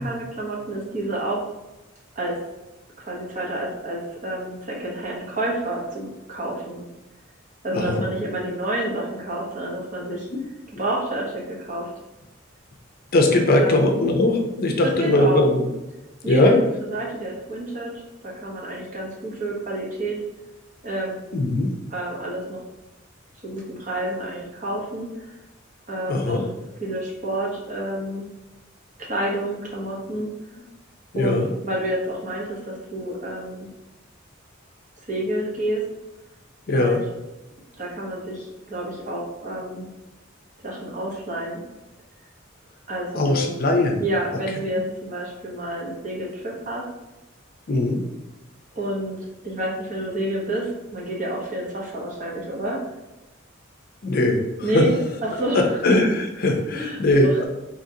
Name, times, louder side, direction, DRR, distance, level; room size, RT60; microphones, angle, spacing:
voice 1, 0.0-1.5 2.2-2.4 3.0-6.8 7.6-10.3 10.8-11.9 13.5-13.8 15.0-15.4 16.2-16.5 16.9-17.9 18.2-20.2 20.8-21.2 21.9-22.6 23.4-25.4 25.9-26.4 26.8-28.3 29.0-30.3 31.1-33.7 35.1-35.8 36.7-37.0 37.8-39.9 40.6-41.6 42.9-43.5 44.0-46.8 48.7-49.2 49.4-52.8 54.6-55.6 56.7-57.4, right 1 dB, 40° right, -3 dB, 0.9 m, -29 dB
voice 2, 7.7-8.0 10.3-10.4 13.1-15.6 16.3-16.6 21.3-21.7 26.1-26.4 31.1-31.5 36.7-37.0 43.1-44.0 47.7-48.0 54.0-54.9 55.5-57.4, left 1 dB, 50° left, 3 dB, 0.5 m, -20 dB
3.8 x 2.9 x 2.7 m, 1.0 s
head